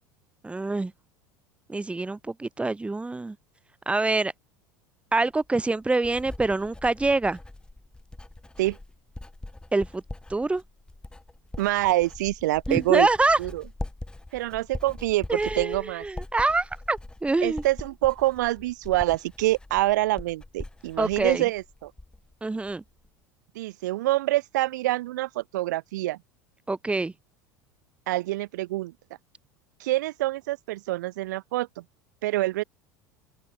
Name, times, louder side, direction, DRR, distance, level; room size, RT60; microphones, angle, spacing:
voice 1, 0.4-0.9 1.7-3.4 3.9-4.3 5.1-7.4 9.7-10.0 10.3-10.6 12.7-13.4 15.3-17.6 21.0-21.4 22.4-22.8 26.7-27.1, right 3 dB, 10° right, 4.1 m, -25 dB
Writing, 5.3-22.4 22.6-23.1, left 2 dB, 10° left, 5.9 m, -42 dB
voice 2, 11.6-13.1 13.4-13.6 14.3-16.0 17.4-21.9 23.5-26.2 28.1-28.9 29.8-31.8 32.2-32.6, right 17 dB, 65° right, 6.3 m, -26 dB
open air
figure-of-eight pair, 75°, 11 cm